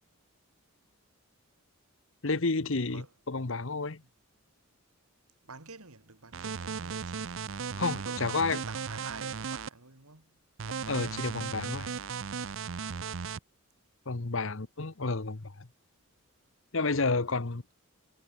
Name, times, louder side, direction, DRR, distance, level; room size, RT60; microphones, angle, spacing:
voice 1, 2.2-4.0 7.8-8.6 10.9-11.9 14.1-15.7 16.7-17.6, left 3 dB, 60° left, 1.1 m, -31 dB
voice 2, 5.4-7.4 7.7-10.4, right 4 dB, 80° right, 3.2 m, -49 dB
sound 1, 6.3-9.7 10.6-13.4, right 6 dB, 60° right, 0.6 m, -36 dB
head